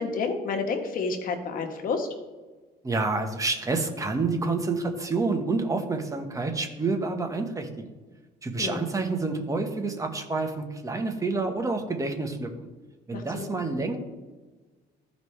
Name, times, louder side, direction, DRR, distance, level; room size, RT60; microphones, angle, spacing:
voice 1, 0.0-2.1 8.6-8.8 13.1-13.5, left 4 dB, 55° left, 5 dB, 1.4 m, -30 dB
voice 2, 2.8-7.9 8.4-12.7 13.1-14.0, right 3 dB, 20° right, 4 dB, 1.3 m, -28 dB
14.5 x 5.3 x 3.3 m, 1.3 s
cardioid pair, 110°, 17 cm